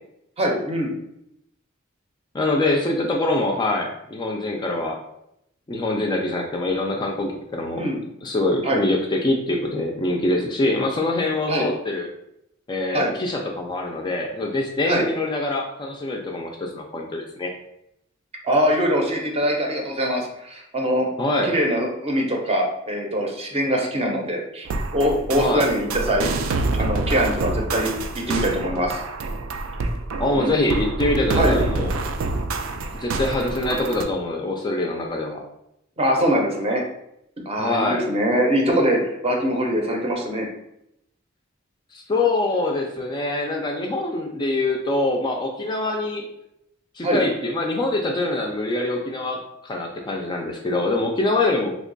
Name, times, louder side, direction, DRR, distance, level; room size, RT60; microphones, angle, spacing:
voice 1, 0.4-0.9 7.7-8.0 8.6-8.8 11.5-11.7 12.9-13.1 14.8-15.0 18.4-21.1 21.4-27.9 28.1-29.0 30.3-30.5 31.3-31.6 36.0-36.8 37.4-40.5 47.0-47.2, equal, 30° right, 1 dB, 0.6 m, -23 dB
voice 2, 2.3-5.0 5.7-7.8 8.2-12.1 12.7-17.5 21.2-21.5 25.4-25.6 30.2-32.0 32.9-35.4 37.6-38.0 41.9-46.2 47.0-51.8, left 2 dB, 20° left, 1 dB, 0.3 m, -24 dB
sound 1, 24.7-34.0, right 3 dB, 70° right, 0.4 m, -27 dB
3.0 x 2.2 x 3.8 m, 0.80 s
head